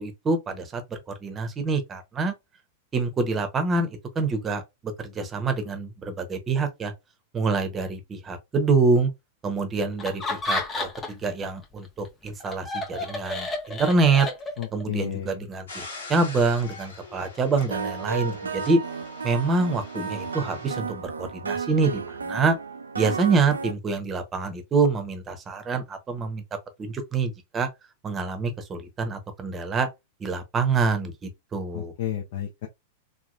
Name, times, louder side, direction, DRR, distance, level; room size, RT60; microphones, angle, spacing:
voice 1, 0.0-2.3 2.9-6.9 7.3-9.1 9.4-14.3 14.7-15.8 16.1-18.8 19.2-22.6 23.0-26.4 26.8-27.7 28.0-29.9 30.2-31.9, right 4 dB, 25° right, 0.7 m, -26 dB
Laughter, 10.0-11.3 11.6-14.8, left 2 dB, 20° left, 0.7 m, -31 dB
voice 2, 14.6-15.4 31.7-32.7, left 10 dB, 60° left, 0.5 m, -32 dB
sound 1, 15.7-20.8, left 3 dB, 75° left, 1.2 m, -43 dB
sound 2, 17.7-23.7, right 5 dB, 85° right, 0.3 m, -33 dB
2.9 x 2.3 x 2.4 m
figure-of-eight pair, 100°, 0 cm